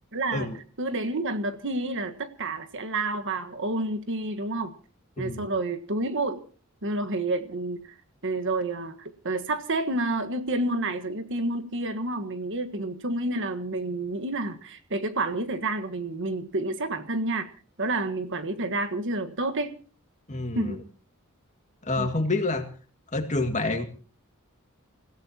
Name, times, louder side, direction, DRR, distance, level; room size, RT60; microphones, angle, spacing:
voice 1, 0.1-0.5 0.8-4.7 5.2-6.4 6.8-7.8 8.2-17.5 17.8-19.8 20.5-20.8 22.0-22.1, right 2 dB, 60° right, 1.5 m, -29 dB
voice 2, 5.2-5.5 20.3-20.8 21.8-22.7 23.1-23.9, left 2 dB, 35° left, 2.2 m, -28 dB
28.5 x 16.0 x 2.9 m
head